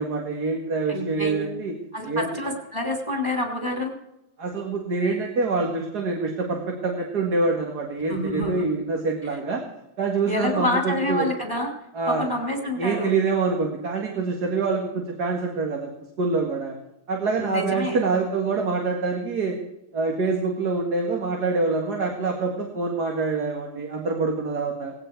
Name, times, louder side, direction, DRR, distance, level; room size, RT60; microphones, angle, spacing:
voice 1, 0.0-1.7 2.1-2.3 4.4-9.6 10.0-11.3 11.9-12.3 12.8-15.9 16.2-16.7 17.1-19.6 19.9-24.9, right 3 dB, 50° right, 1 dB, 2.3 m, -25 dB
voice 2, 0.9-1.5 1.9-4.0 8.1-8.7 10.3-11.7 12.1-13.1 17.4-18.0, left 1 dB, 10° right, 1 dB, 2.7 m, -27 dB
18.5 x 16.5 x 4.6 m, 0.88 s
omnidirectional pair, 2.2 m